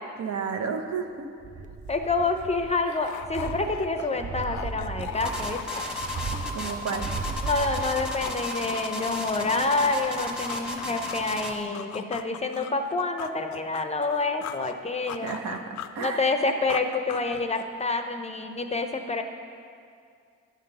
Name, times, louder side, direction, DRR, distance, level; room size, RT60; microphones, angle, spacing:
voice 1, 0.2-1.3 6.5-7.1 15.2-16.2, right 6 dB, 65° right, 5 dB, 0.8 m, -32 dB
sound 1, 1.4-2.9 3.1-8.5 8.8-8.9, right 4 dB, 25° right, 0.4 m, -36 dB
sound 2, 1.7-7.5 7.8-11.3 11.7-14.8 15.1-17.8, left 10 dB, 70° left, 0.5 m, -41 dB
voice 2, 1.9-5.6 7.4-15.4 16.0-19.2, left 3 dB, 20° left, 6 dB, 0.6 m, -27 dB
sound 3, 5.2-11.6, left 2 dB, 5° right, 1.1 m, -33 dB
10.5 x 3.8 x 6.8 m, 2.3 s
cardioid pair, 90°, 30 cm